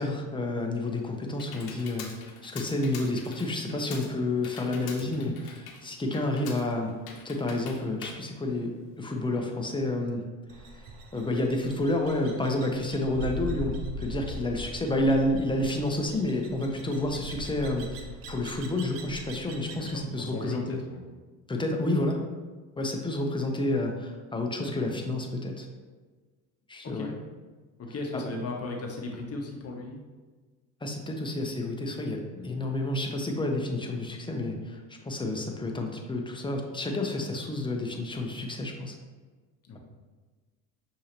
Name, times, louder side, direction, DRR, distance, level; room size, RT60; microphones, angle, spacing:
voice 1, 0.0-6.9 7.2-10.2 11.1-20.8 21.5-22.2 22.8-25.7 26.7-27.1 30.8-39.0, left 1 dB, 10° left, 2 dB, 0.7 m, -30 dB
Computer keyboard, 0.6-9.2, left 5 dB, 60° left, 1.0 m, -46 dB
sound 1, 10.5-20.0, right 1 dB, 55° right, 0.8 m, -41 dB
voice 2, 19.7-21.1 26.8-27.1 27.8-30.0 32.3-32.6 39.6-39.8, left 2 dB, 35° left, 1 dB, 0.9 m, -37 dB
6.3 x 2.8 x 3.0 m, 1.4 s
hypercardioid pair, 75°, 43 cm